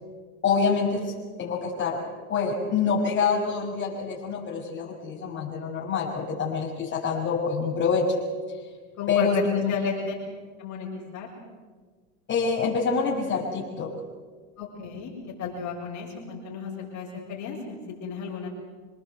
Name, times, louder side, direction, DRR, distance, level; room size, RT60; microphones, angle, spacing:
voice 1, 0.4-1.1 1.4-2.0 2.3-8.1 9.1-9.7 12.3-13.9, left 5 dB, 25° left, -4 dB, 6.7 m, -26 dB
voice 2, 9.0-9.4 9.7-10.1 10.6-10.9 11.1-11.3 14.6-15.1 15.4-18.5, left 6 dB, 45° left, -2 dB, 6.9 m, -33 dB
25.5 x 19.5 x 8.2 m, 1.5 s
supercardioid pair, 115°, 41 cm